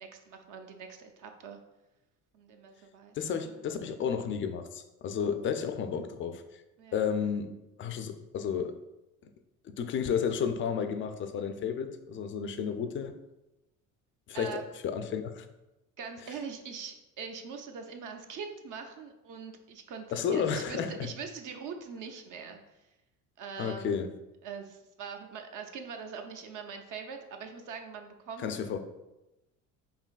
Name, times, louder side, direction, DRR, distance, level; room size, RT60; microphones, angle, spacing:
voice 1, 0.0-1.6 2.3-3.1 3.4-3.6 5.9-6.1 6.8-7.0 14.3-14.6 16.0-22.6 23.4-24.0 24.4-28.5, right 6 dB, 55° right, 5 dB, 0.6 m, -42 dB
voice 2, 3.1-6.6 6.9-7.5 7.8-8.8 9.6-13.2 14.3-15.5 20.1-21.1 23.6-24.1 28.4-28.8, left 7 dB, 35° left, 9 dB, 0.4 m, -32 dB
4.9 x 2.6 x 2.3 m, 0.98 s
hypercardioid pair, 75°, 38 cm